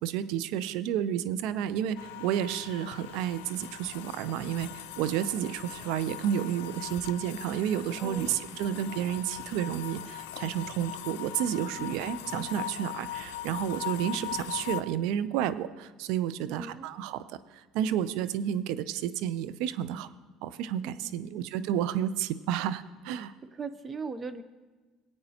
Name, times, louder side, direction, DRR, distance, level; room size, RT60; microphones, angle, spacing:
voice 1, 0.0-17.2 17.7-20.1 20.4-23.3, right 10 dB, 75° right, 14 dB, 0.5 m, -31 dB
sound 1, 2.0-14.8, left 12 dB, 85° left, 0.4 m, -40 dB
voice 2, 8.0-8.4 8.7-8.9 11.8-11.9 12.2-12.3 16.5-16.9 20.8-21.1 23.5-24.4, right 4 dB, 30° right, 11 dB, 0.7 m, -40 dB
20.0 x 8.7 x 2.9 m, 1.3 s
supercardioid pair, 80°, 0 cm